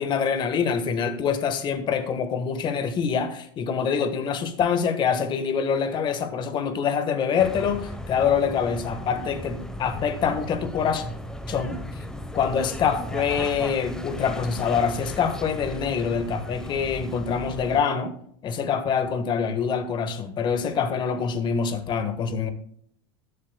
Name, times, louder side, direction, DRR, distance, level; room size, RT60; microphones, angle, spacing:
voice 1, 0.0-11.0 11.5-11.8 12.3-18.2 18.4-22.5, left 6 dB, 40° left, 1.5 m, -25 dB
sound 1, 7.4-17.8, left 1 dB, 5° left, 1.0 m, -36 dB
19.5 x 7.5 x 2.3 m
supercardioid pair, 110°, 12 cm